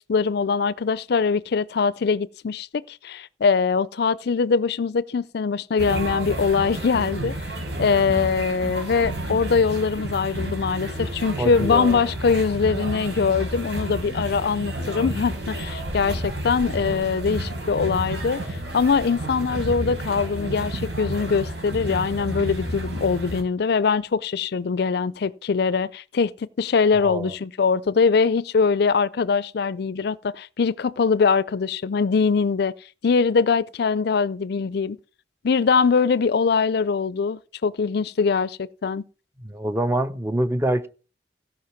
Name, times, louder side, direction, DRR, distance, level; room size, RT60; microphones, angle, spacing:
voice 1, 0.0-7.3 7.8-32.7 33.0-35.0 35.4-39.0, left 5 dB, 65° left, 0.5 m, -22 dB
sound 1, 5.8-23.4, right 1 dB, 80° right, 4.5 m, -31 dB
voice 2, 11.4-12.0 16.8-17.0 27.0-27.3 39.4-40.9, right 1 dB, 15° right, 0.8 m, -26 dB
16.0 x 5.6 x 5.9 m
head